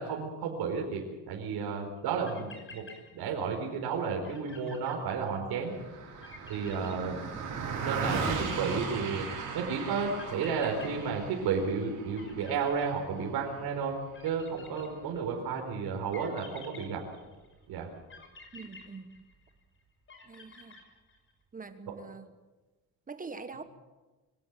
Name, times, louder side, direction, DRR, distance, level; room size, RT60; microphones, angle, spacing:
voice 1, 0.0-2.8 3.1-5.7 6.5-7.2 7.8-9.2 9.5-13.9 14.2-17.0 17.7-17.9, right 5 dB, 80° right, 1 dB, 4.5 m, -32 dB
sound 1, 2.0-2.1 2.2-3.6 3.9-4.0 4.2-5.6 6.2-7.6 8.2-9.5 10.2-11.8 12.1-13.6 14.1-15.4 16.1-17.5 18.1-19.6 20.1-21.3, left 4 dB, 35° left, 5.2 m, -51 dB
Car passing by, 5.7-15.3, right 5 dB, 55° right, 6.8 m, -38 dB
voice 2, 18.5-19.2 20.2-20.8 21.5-22.3 23.1-23.6, right 4 dB, 20° right, 10 dB, 1.3 m, -44 dB
24.5 x 17.5 x 7.5 m, 1.2 s
cardioid pair, 135°, 37 cm